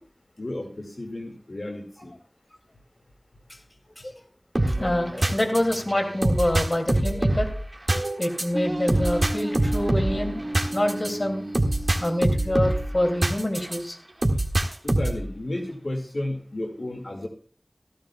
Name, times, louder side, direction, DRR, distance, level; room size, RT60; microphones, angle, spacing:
voice 1, 0.4-2.1 14.8-17.3, left 1 dB, 70° left, 1 dB, 2.2 m, -33 dB
sound 1, 4.5-13.8 14.2-15.3, right 1 dB, 50° right, 1.9 m, -25 dB
voice 2, 4.8-7.5 8.2-10.4 10.7-11.5 12.0-14.0, left 1 dB, 45° left, 3 dB, 2.6 m, -26 dB
16.0 x 14.5 x 2.3 m, 0.43 s
wide cardioid pair, 45°, 0 cm